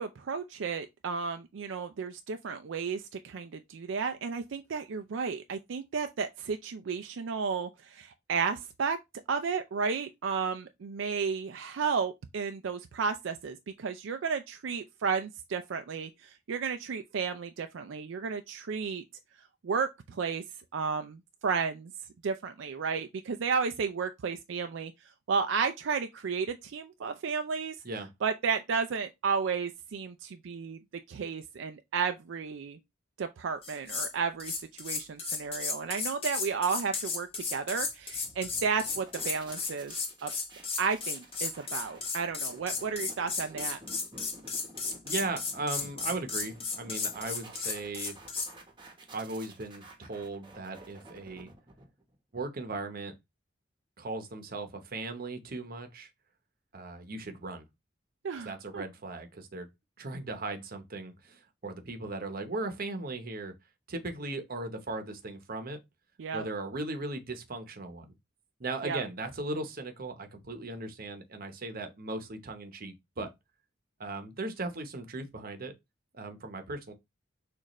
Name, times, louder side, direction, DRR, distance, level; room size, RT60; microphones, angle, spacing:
voice 1, 0.0-9.0 9.3-19.0 19.6-20.4 20.7-21.9 22.2-24.9 25.3-27.8 28.2-30.8 31.1-32.8 33.2-39.9 40.2-40.3 40.8-43.8 58.2-58.8 66.2-66.5 68.8-69.0, right 5 dB, 80° right, 0.4 m, -33 dB
sound 1, 33.6-34.1 34.4-48.5, left 4 dB, 30° left, 1.1 m, -34 dB
sound 2, 37.8-52.2, right 2 dB, 25° right, 0.9 m, -52 dB
voice 2, 45.0-48.2 49.1-51.5 52.3-53.1 54.0-56.1 56.7-57.6 58.4-59.7 60.0-63.5 63.9-65.8 66.3-68.1 68.6-73.3 74.0-75.7 76.1-76.9, right 2 dB, 50° right, 0.9 m, -37 dB
6.4 x 2.5 x 3.0 m
head